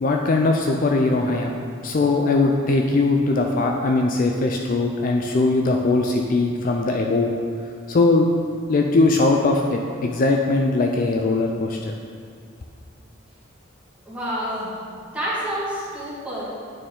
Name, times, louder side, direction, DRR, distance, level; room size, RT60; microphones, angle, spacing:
voice 1, 0.0-1.6 1.8-7.3 7.9-8.3 8.7-11.9, left 3 dB, 40° left, 2 dB, 0.3 m, -20 dB
voice 2, 14.1-14.7 15.1-16.5, equal, 5° right, -9 dB, 1.7 m, -28 dB
9.1 x 4.3 x 3.7 m, 2.2 s
head